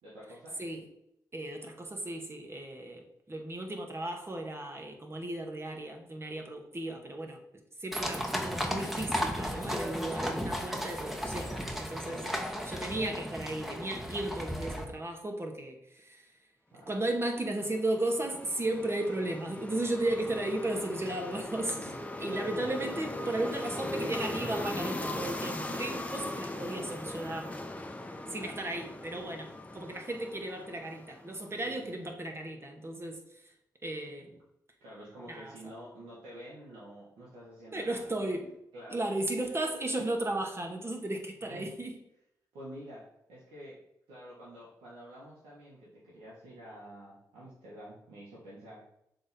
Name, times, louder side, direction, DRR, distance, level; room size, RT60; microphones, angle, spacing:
voice 1, 0.0-0.5 12.0-12.4 16.7-17.0 21.9-22.6 28.1-28.6 31.6-31.9 34.8-38.3 38.7-39.0 41.4-41.8 42.5-43.8 44.1-48.9, equal, 85° right, -8 dB, 1.6 m, -48 dB
voice 2, 1.3-7.4 7.8-12.2 12.6-16.2 16.9-21.9 22.2-27.7 28.3-33.2 33.8-34.4 35.3-35.5 37.7-38.5 38.9-42.0, right 1 dB, 35° right, 3 dB, 1.6 m, -35 dB
sound 1, 7.9-14.8, equal, ahead, 1.3 m, -35 dB
sound 2, 17.2-31.6, left 1 dB, 20° left, 1.0 m, -39 dB
6.6 x 3.8 x 4.3 m, 0.79 s
supercardioid pair, 40°, 8 cm